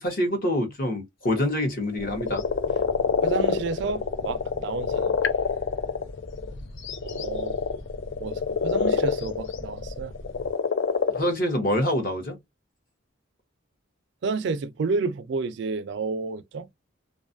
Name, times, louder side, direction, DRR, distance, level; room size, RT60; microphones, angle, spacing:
voice 1, 0.0-2.4 11.1-12.4, left 1 dB, 45° left, 0.8 m, -26 dB
sound 1, 1.4-1.5 2.0-6.5 6.8-11.2, left 5 dB, 65° left, 0.4 m, -26 dB
sound 2, 2.0-10.5, left 1 dB, 85° left, 0.8 m, -42 dB
voice 2, 3.2-5.1 7.0-7.6 8.2-10.1 14.2-16.7, right 4 dB, 55° right, 0.3 m, -30 dB
2.5 x 2.3 x 2.5 m
head